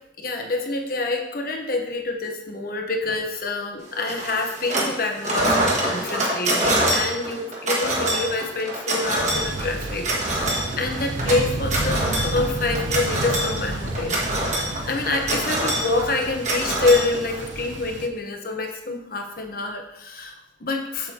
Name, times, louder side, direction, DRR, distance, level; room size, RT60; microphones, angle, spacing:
voice 1, 0.2-14.2 14.9-21.1, left 3 dB, 50° left, 3 dB, 1.0 m, -26 dB
sound 1, 4.1-5.0 5.2-17.6, right 1 dB, 40° right, 1.6 m, -25 dB
Thunder, 9.2-18.1, right 2 dB, 80° right, 0.7 m, -31 dB
7.7 x 7.4 x 2.9 m, 0.83 s
head